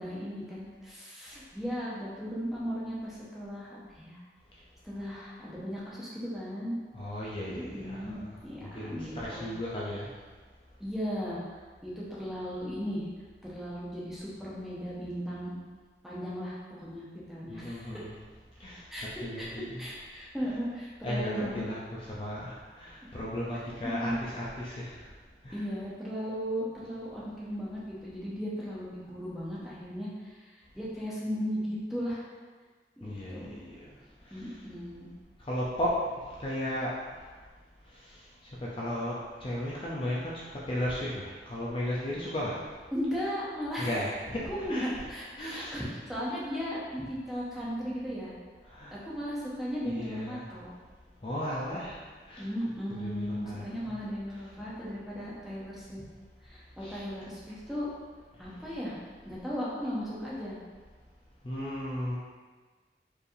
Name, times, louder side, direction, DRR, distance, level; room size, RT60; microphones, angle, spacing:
voice 1, 0.0-4.2 4.8-6.7 7.5-9.5 10.8-11.4 11.8-13.1 13.4-15.6 16.0-18.1 18.9-19.5 19.8-21.6 23.8-24.2 25.5-32.3 33.0-33.5 34.3-35.1 42.9-43.9 44.5-48.3 48.9-50.7 52.4-56.0 56.4-57.9 58.4-59.0 59.2-60.6, equal, ahead, -8 dB, 0.7 m, -36 dB
voice 2, 6.9-10.1 17.5-18.1 18.6-19.8 21.0-25.1 25.4-25.6 33.0-34.0 34.2-34.6 35.4-37.2 37.9-42.6 43.8-45.1 45.4-45.7 48.6-49.0 49.8-50.5 51.2-52.0 52.3-52.5 52.9-53.6 56.8-57.0 61.4-62.2, left 1 dB, 30° left, -6 dB, 0.4 m, -35 dB
4.6 x 3.3 x 2.6 m, 1.4 s
head